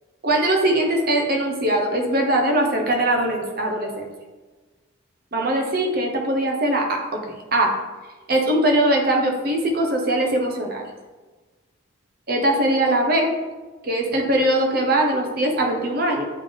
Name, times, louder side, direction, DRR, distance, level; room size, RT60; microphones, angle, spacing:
voice 1, 0.2-4.1 5.3-7.2 7.5-7.7 8.3-10.8 12.3-13.3 13.8-16.2, right 1 dB, 45° right, 2 dB, 0.9 m, -21 dB
8.7 x 3.5 x 3.7 m, 1.3 s
head